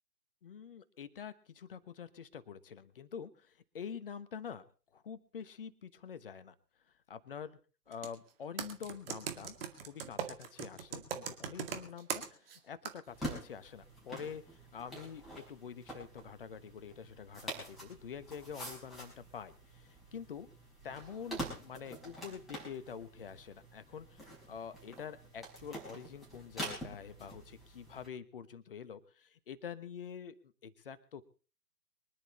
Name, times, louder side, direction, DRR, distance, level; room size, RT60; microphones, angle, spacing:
voice 1, 0.4-4.6 4.9-6.5 7.1-7.6 7.9-20.5 20.8-30.3 30.6-31.2, left 7 dB, 35° left, 14 dB, 1.2 m, -46 dB
Computer keyboard, 7.9-8.1 8.6-12.6 12.9-13.0, right 7 dB, 35° right, 2.2 m, -39 dB
sound 1, 13.1-28.1, right 1 dB, ahead, 5.3 m, -46 dB
24.0 x 11.0 x 4.3 m, 0.38 s
figure-of-eight pair, 140°, 49 cm